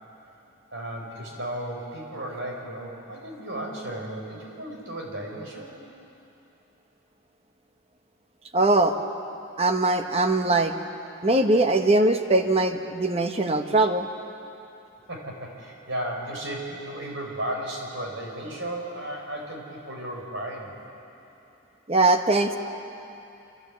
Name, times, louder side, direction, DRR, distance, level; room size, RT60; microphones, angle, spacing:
voice 1, 0.7-5.8 15.1-20.7, right 1 dB, 60° right, 0 dB, 4.5 m, -34 dB
voice 2, 8.5-8.9 9.6-10.7 11.2-14.1 21.9-22.6, right 2 dB, 30° right, 6 dB, 1.1 m, -21 dB
27.0 x 14.0 x 8.4 m, 2.8 s
head